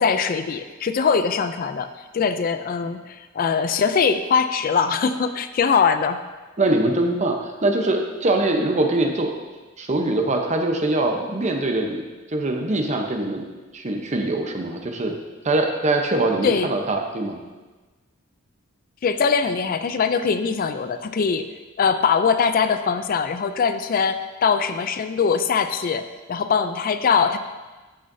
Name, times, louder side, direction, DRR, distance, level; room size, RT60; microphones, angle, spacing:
voice 1, 0.0-1.9 2.1-6.2 16.4-16.7 19.0-21.5 21.8-27.4, left 6 dB, 45° left, 10 dB, 0.4 m, -22 dB
voice 2, 6.6-9.3 9.8-12.0 12.3-13.5 13.7-15.1 15.4-17.4, right 2 dB, 35° right, 3 dB, 0.8 m, -23 dB
13.5 x 6.3 x 2.7 m, 1.2 s
head